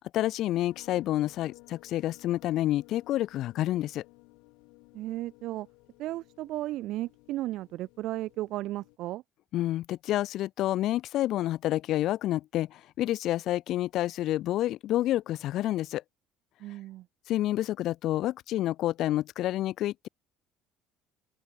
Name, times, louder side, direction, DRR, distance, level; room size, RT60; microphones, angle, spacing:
voice 1, 0.1-4.0 9.5-16.0 17.3-20.1, left 14 dB, 60° left, 0.6 m, -29 dB
sound 1, 0.7-9.0, left 28 dB, 85° left, 6.9 m, -57 dB
voice 2, 4.9-5.7 6.0-9.2 16.6-17.1, right 16 dB, 65° right, 3.6 m, -34 dB
open air
cardioid pair, 110°, 0 cm